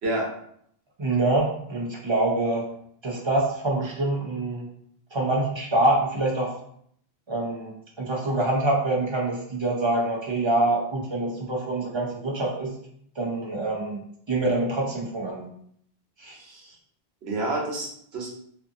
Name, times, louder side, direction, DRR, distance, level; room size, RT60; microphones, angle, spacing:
voice 1, 1.0-2.7 3.0-4.6 5.1-6.6 7.3-12.7 13.2-14.0 14.3-15.4 16.2-16.4, right 2 dB, 35° right, -2 dB, 0.5 m, -25 dB
voice 2, 16.3-16.7 17.2-18.3, right 2 dB, 90° right, -2 dB, 1.1 m, -29 dB
2.6 x 2.4 x 2.5 m, 0.66 s
omnidirectional pair, 1.0 m